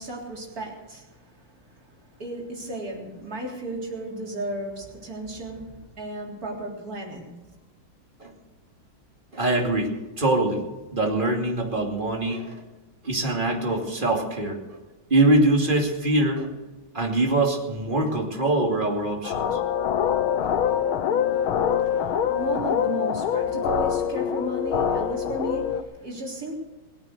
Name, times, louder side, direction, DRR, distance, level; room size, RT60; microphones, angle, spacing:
voice 1, 0.0-7.3 21.3-26.5, right 1 dB, 45° right, -2 dB, 4.1 m, -34 dB
voice 2, 9.3-10.6 10.9-12.6 13.0-14.6 15.1-16.5 16.9-19.6 20.7-20.8 23.5-23.6, right 2 dB, 25° right, 0 dB, 2.8 m, -23 dB
sound 1, 19.2-25.8, left 8 dB, 85° left, 1.7 m, -24 dB
21.0 x 9.1 x 6.7 m, 1.2 s
omnidirectional pair, 2.2 m